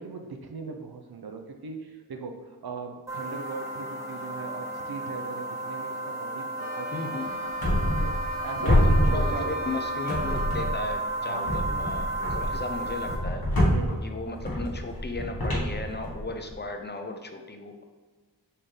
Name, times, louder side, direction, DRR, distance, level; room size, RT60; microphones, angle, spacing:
voice 1, 0.0-7.3 8.0-8.9 9.1-9.5 11.2-11.6 13.7-14.0, right 4 dB, 60° right, 5 dB, 0.6 m, -39 dB
sound 1, 3.1-13.1, right 2 dB, 5° right, 1.1 m, -33 dB
sound 2, 6.6-10.8, left 1 dB, 10° left, 1.5 m, -41 dB
voice 2, 6.9-7.4 8.6-13.4 14.0-17.8, left 3 dB, 25° left, 5 dB, 0.4 m, -35 dB
sound 3, 7.6-8.4 8.6-9.7 10.1-10.9 11.5-16.5, equal, 60° left, 1.3 m, -26 dB
4.4 x 3.6 x 3.2 m, 1.4 s
wide cardioid pair, 80°, 42 cm